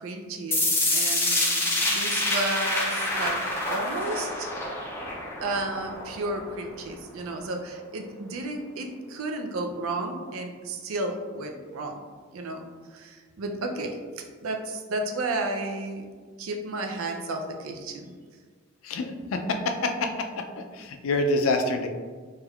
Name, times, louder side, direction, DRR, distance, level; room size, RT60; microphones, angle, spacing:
voice 1, 0.0-4.5 5.4-12.0 12.3-12.6 12.9-14.0 14.4-16.0 16.4-18.1, right 2 dB, 85° right, 4 dB, 0.4 m, -32 dB
sound 1, 0.5-6.5, left 1 dB, 10° left, 0.4 m, -27 dB
voice 2, 18.8-21.9, left 2 dB, 80° left, 5 dB, 0.4 m, -27 dB
3.3 x 3.0 x 2.3 m, 1.5 s
head